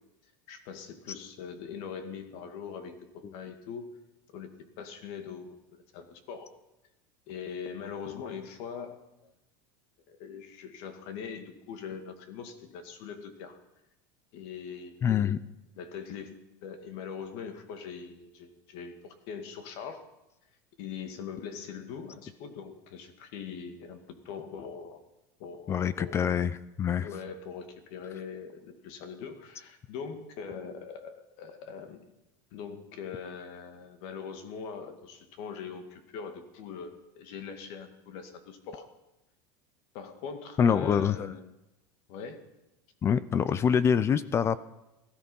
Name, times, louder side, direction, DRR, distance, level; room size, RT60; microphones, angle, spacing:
voice 1, 0.5-3.9 4.3-6.5 7.3-9.3 10.1-13.6 14.3-15.2 15.8-20.0 20.8-25.0 25.4-26.3 27.0-32.0 32.5-38.9 39.9-41.6 42.1-42.4, left 6 dB, 55° left, 7 dB, 2.1 m, -42 dB
voice 2, 15.0-15.4 25.7-27.1 40.6-41.4 43.0-44.6, left 7 dB, 25° left, 17 dB, 0.5 m, -25 dB
17.5 x 13.0 x 5.5 m, 0.95 s
supercardioid pair, 145°, 11 cm